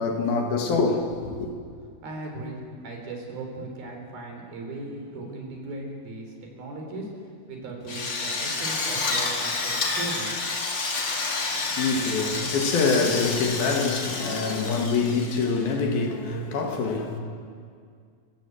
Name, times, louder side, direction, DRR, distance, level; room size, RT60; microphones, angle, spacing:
voice 1, 0.0-1.5 11.8-17.2, left 4 dB, 75° left, 3.9 m, -25 dB
voice 2, 2.0-10.4, right 2 dB, 70° right, 5.8 m, -37 dB
Drill, 7.9-15.7, left 3 dB, 35° left, 2.2 m, -29 dB
28.0 x 16.5 x 7.9 m
omnidirectional pair, 4.3 m